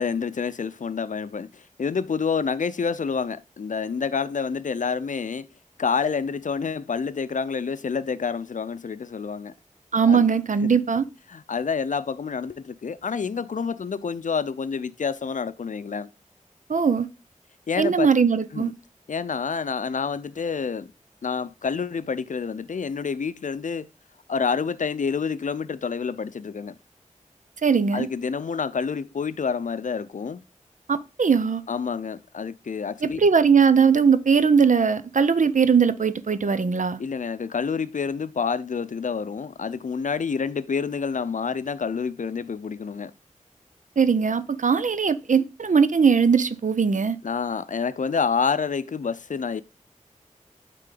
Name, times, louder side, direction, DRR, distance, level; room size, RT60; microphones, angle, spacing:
voice 1, 0.0-5.5 5.8-9.5 10.1-10.3 11.3-16.1 17.7-18.1 18.5-18.7 19.1-20.9 21.2-23.9 24.3-26.7 27.9-30.4 31.7-33.2 37.0-43.1 47.2-49.6, left 5 dB, 70° left, 0.5 m, -28 dB
voice 2, 9.9-11.1 16.7-17.1 17.8-18.7 27.6-28.1 30.9-31.6 33.0-37.0 44.0-47.2, right 6 dB, 70° right, 0.7 m, -20 dB
9.1 x 3.8 x 3.8 m
wide cardioid pair, 75°, 14 cm